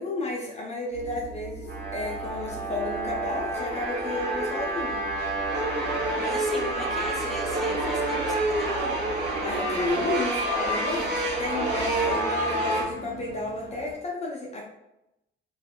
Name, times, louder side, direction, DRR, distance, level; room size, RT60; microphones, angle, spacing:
voice 1, 0.0-5.0 9.4-14.6, left 2 dB, 35° left, -2 dB, 0.7 m, -32 dB
sound 1, 0.9-14.0, right 2 dB, 25° right, 1.2 m, -41 dB
sound 2, 1.7-12.8, right 2 dB, 55° right, 1.2 m, -28 dB
voice 2, 6.2-8.9, equal, ahead, -3 dB, 0.8 m, -38 dB
3.2 x 2.3 x 2.4 m, 0.88 s
cardioid pair, 90°, 20 cm